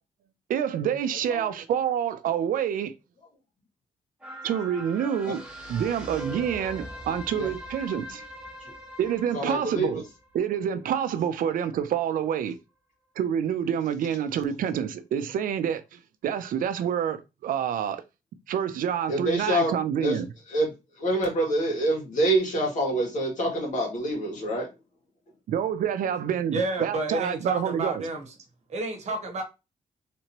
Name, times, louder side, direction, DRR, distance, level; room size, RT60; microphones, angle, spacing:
voice 1, 0.5-2.9 4.4-5.4 5.7-8.2 9.0-10.0 10.3-12.6 13.2-18.0 18.5-20.3 25.5-28.0, right 9 dB, 75° right, 0.5 m, -27 dB
sound 1, 4.2-10.9 11.3-11.4, equal, 5° right, 1.2 m, -41 dB
voice 2, 9.3-10.0 19.1-19.7 20.0-20.2 20.5-20.7 21.0-24.7, right 1 dB, 60° left, 2.0 m, -26 dB
voice 3, 26.5-28.2 28.7-29.4, right 2 dB, 55° right, 1.0 m, -30 dB
3.4 x 2.9 x 2.8 m
cardioid pair, 120°, 14 cm